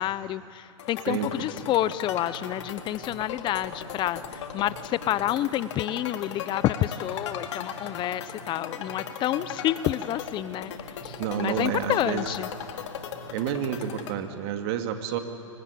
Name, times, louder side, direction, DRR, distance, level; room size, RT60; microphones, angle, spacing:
voice 1, 0.0-10.7 11.0-12.5, left 13 dB, 30° left, 17 dB, 0.7 m, -29 dB
sound 1, 0.8-14.1, left 9 dB, 65° left, 2.2 m, -38 dB
voice 2, 1.1-1.5 11.2-12.3 13.3-15.2, right 9 dB, 50° right, 6 dB, 2.5 m, -29 dB
sound 2, 1.1-14.1, right 4 dB, 75° right, 4.0 m, -47 dB
28.5 x 25.0 x 8.5 m, 2.5 s
hypercardioid pair, 115°, 17 cm